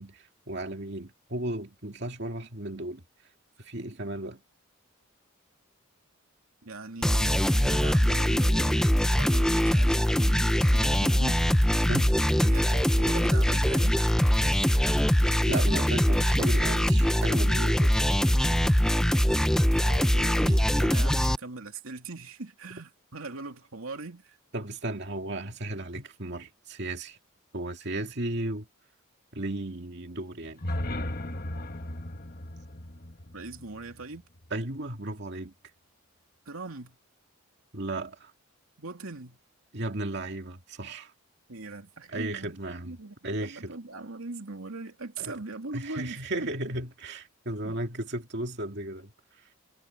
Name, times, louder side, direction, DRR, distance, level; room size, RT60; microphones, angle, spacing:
voice 1, 0.0-3.0 3.6-4.4 11.9-12.1 15.4-18.7 24.5-27.2 27.5-28.7 29.3-30.6 34.5-35.5 37.7-38.3 39.7-41.1 42.1-43.0 43.2-43.7 45.2-45.3 45.7-49.1 49.4-49.5, right 1 dB, 55° right, 2.3 m, -35 dB
voice 2, 6.6-11.7 12.4-14.0 19.8-24.4 33.3-34.2 36.5-37.0 38.8-39.4 41.5-42.6 42.9-43.2 43.4-46.5 47.6-47.8, right 3 dB, 80° right, 2.7 m, -40 dB
sound 1, 7.0-21.4, equal, 5° left, 0.5 m, -23 dB
sound 2, 30.4-34.5, left 1 dB, 45° left, 1.5 m, -36 dB
head